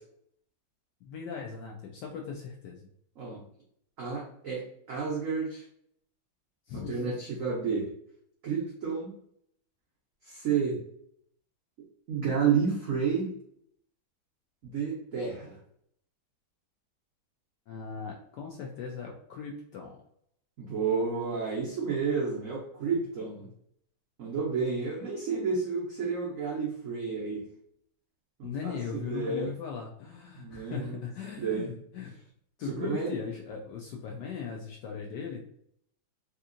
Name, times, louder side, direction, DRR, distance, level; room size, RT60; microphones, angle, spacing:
voice 1, 1.0-2.9 6.7-7.2 17.7-20.0 28.4-32.1 32.6-35.4, left 6 dB, 75° left, 0 dB, 1.0 m, -38 dB
voice 2, 4.0-5.7 6.7-7.9 8.4-9.1 10.2-10.8 12.1-13.3 14.6-15.6 20.6-23.5 24.2-27.4 28.4-29.5 30.4-31.0 31.4-31.7 32.6-33.1, right 5 dB, 85° right, -3 dB, 0.7 m, -31 dB
3.5 x 2.8 x 2.5 m, 0.70 s
omnidirectional pair, 2.3 m